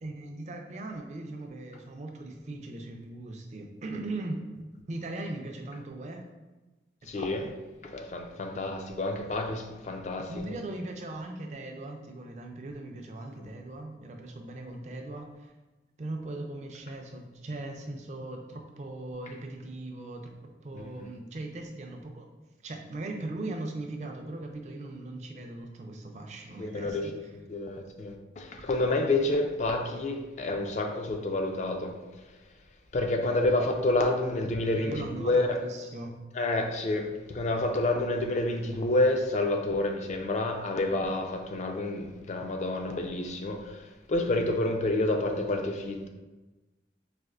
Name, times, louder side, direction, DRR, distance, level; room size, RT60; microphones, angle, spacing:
voice 1, 0.0-4.4 4.9-6.3 7.1-7.5 10.3-15.5 16.0-20.3 20.6-22.3 22.6-27.3 34.5-36.2, right 2 dB, 40° right, 3 dB, 0.4 m, -39 dB
voice 2, 7.1-7.5 7.8-10.5 13.4-13.5 20.7-21.1 26.6-27.2 27.5-32.0 32.9-35.6 36.3-46.1, left 2 dB, 40° left, 4 dB, 0.3 m, -29 dB
4.2 x 2.5 x 2.4 m, 1.1 s
head